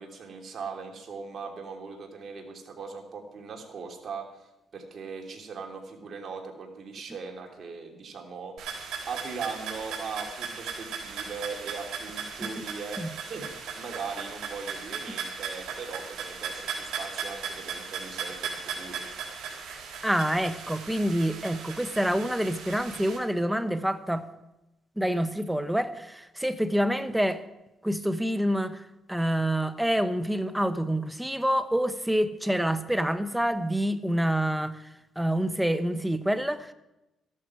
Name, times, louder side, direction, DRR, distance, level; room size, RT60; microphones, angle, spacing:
voice 1, 0.0-8.8 9.1-13.0 13.3-19.0, right 5 dB, 50° right, 2 dB, 2.9 m, -39 dB
sound 1, 8.6-23.2, right 6 dB, 75° right, 3.7 m, -37 dB
voice 2, 19.7-24.3 25.0-27.4 27.8-28.8 29.1-34.8 35.2-36.7, equal, 5° right, 11 dB, 1.0 m, -27 dB
14.0 x 12.0 x 4.8 m, 0.94 s
cardioid pair, 90°, 0 cm